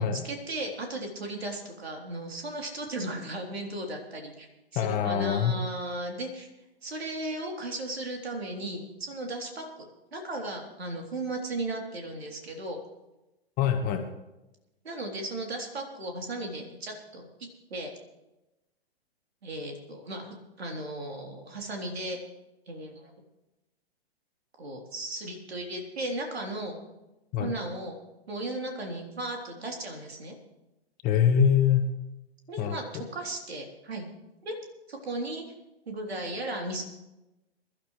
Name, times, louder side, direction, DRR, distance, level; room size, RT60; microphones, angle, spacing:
voice 1, 0.0-4.5 4.7-6.5 6.8-9.7 10.1-12.8 14.8-17.3 17.7-17.9 19.4-20.3 20.6-22.2 22.7-23.1 24.6-26.8 27.4-28.0 28.3-30.4 32.5-34.1 34.4-34.6 34.9-35.4 35.9-36.8, right 1 dB, 70° right, 1 dB, 3.6 m, -36 dB
voice 2, 4.7-5.6 13.6-14.0 27.3-27.5 31.0-31.9 32.6-33.0, left 8 dB, 25° left, 4 dB, 1.5 m, -24 dB
23.5 x 12.0 x 3.3 m, 0.99 s
figure-of-eight pair, 115°, 32 cm